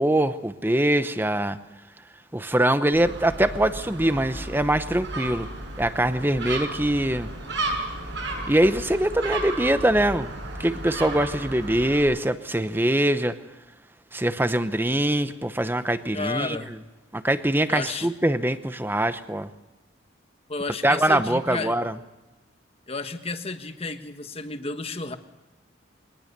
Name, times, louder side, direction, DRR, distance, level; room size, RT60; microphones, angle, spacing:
voice 1, 0.0-1.6 2.3-5.5 5.8-7.3 8.5-10.3 10.6-13.3 14.1-16.6 17.1-19.5 20.8-21.9, right 1 dB, 10° right, 11 dB, 0.8 m, -23 dB
Gull seagull, 2.9-12.0, right 2 dB, 60° right, 7.2 m, -33 dB
voice 2, 16.1-16.8 17.7-18.1 20.5-21.8 22.9-25.2, left 3 dB, 30° left, 8 dB, 1.3 m, -32 dB
23.0 x 19.5 x 6.8 m, 1.1 s
head